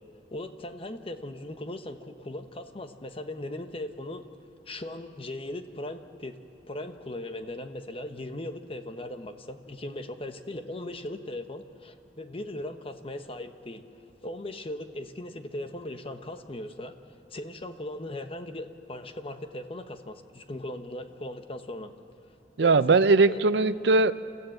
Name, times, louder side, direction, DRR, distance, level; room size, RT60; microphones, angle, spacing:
voice 1, 0.3-4.2 4.7-6.4 6.7-13.8 14.2-16.9 17.3-21.9 22.6-23.4, left 1 dB, 30° left, 8 dB, 1.0 m, -38 dB
voice 2, 22.6-24.1, right 3 dB, 70° right, 14 dB, 0.6 m, -20 dB
28.0 x 14.0 x 7.8 m, 2.4 s
head